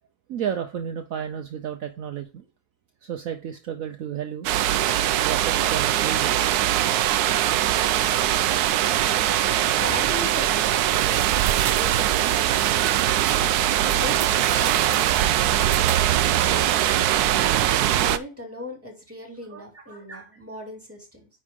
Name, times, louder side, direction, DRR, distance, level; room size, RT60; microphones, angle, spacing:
voice 1, 0.3-2.5 3.0-4.5 5.2-6.4 19.5-19.9, right 9 dB, 65° right, 1.1 m, -32 dB
sound 1, 4.4-18.2, right 12 dB, 90° right, 1.1 m, -21 dB
voice 2, 8.6-12.9 13.3-17.0 17.3-21.3, left 1 dB, 10° right, 2.5 m, -39 dB
9.6 x 4.9 x 3.6 m
omnidirectional pair, 1.6 m